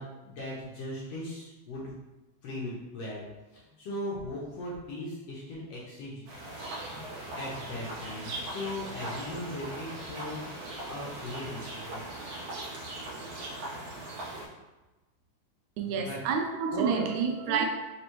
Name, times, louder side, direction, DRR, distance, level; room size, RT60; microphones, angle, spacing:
voice 1, 0.0-1.9 2.4-3.3 3.5-6.2 6.7-7.0 7.4-10.4 10.9-12.0 15.9-16.2, left 1 dB, 70° left, -5 dB, 1.7 m, -38 dB
sound 1, 6.3-14.5, right 1 dB, 60° right, 1.9 m, -39 dB
voice 2, 15.8-17.7, right 5 dB, 85° right, 4 dB, 2.1 m, -28 dB
5.1 x 3.3 x 2.9 m, 1.1 s
omnidirectional pair, 3.6 m